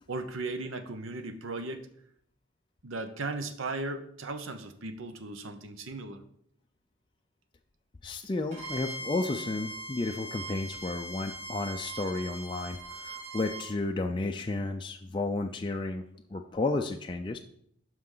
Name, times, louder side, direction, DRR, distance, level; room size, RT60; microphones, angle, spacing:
voice 1, 0.1-1.9 2.8-6.2, right 3 dB, 75° right, 9 dB, 0.8 m, -36 dB
voice 2, 8.0-16.0 16.3-17.4, left 2 dB, 25° left, 3 dB, 0.4 m, -32 dB
Bowed string instrument, 8.5-13.7, right 2 dB, 55° right, 3.6 m, -41 dB
12.0 x 4.8 x 3.9 m, 0.68 s
head